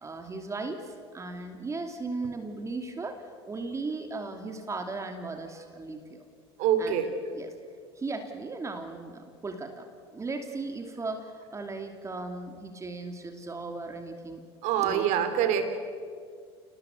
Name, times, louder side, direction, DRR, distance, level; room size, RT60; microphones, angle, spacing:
voice 1, 0.0-6.2 6.8-7.0 7.3-7.5 8.0-9.8 10.1-14.4 14.8-15.0, right 3 dB, 20° right, 5 dB, 2.6 m, -37 dB
voice 2, 6.6-7.1 14.6-15.7, right 9 dB, 60° right, 8 dB, 3.4 m, -25 dB
27.5 x 19.0 x 8.2 m, 2.1 s
hypercardioid pair, 90°, 14 cm